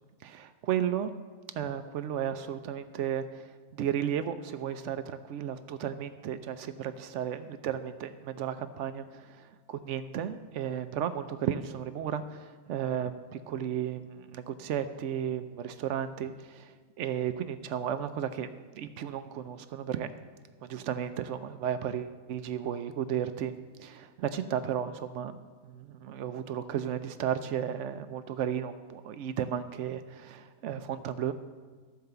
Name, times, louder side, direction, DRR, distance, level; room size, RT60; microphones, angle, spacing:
voice 1, 0.2-1.1 1.6-20.1 20.6-23.5 23.8-31.3, right 9 dB, 65° right, 11 dB, 0.8 m, -34 dB
12.5 x 4.7 x 6.7 m, 1.4 s
omnidirectional pair, 1.5 m